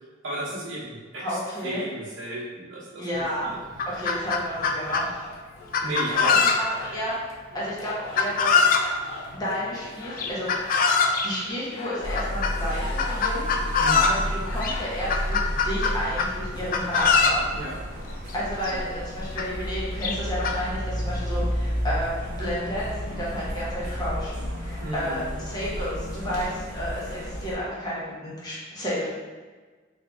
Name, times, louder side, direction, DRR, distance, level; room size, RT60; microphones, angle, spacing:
voice 1, 0.2-1.4 1.6-3.1 3.4-3.6 5.8-6.4 13.8-14.1 17.5-17.7 24.8-25.3, right 1 dB, 65° right, -9 dB, 1.0 m, -33 dB
voice 2, 1.1-1.8 3.0-3.5 3.8-5.1 6.1-7.1 7.5-8.6 9.3-10.5 10.8-10.9 11.2-17.4 18.3-22.1 22.4-29.1, equal, 20° left, -8 dB, 1.0 m, -31 dB
Chicken rooster, 3.1-3.2 3.6-5.1 5.7-6.9 8.2-8.9 10.2-11.3 12.1-12.5 13.0-14.2 14.6-14.7 15.1-16.3 16.7-17.4 18.3-18.4 18.6-18.7 19.4-19.5 20.0-20.5, left 5 dB, 45° left, 0.3 m, -22 dB
sound 1, 3.9-15.3, left 2 dB, 85° left, 0.8 m, -41 dB
sound 2, 12.0-27.5, equal, 35° right, 1.2 m, -32 dB
3.7 x 2.6 x 3.5 m, 1.4 s
head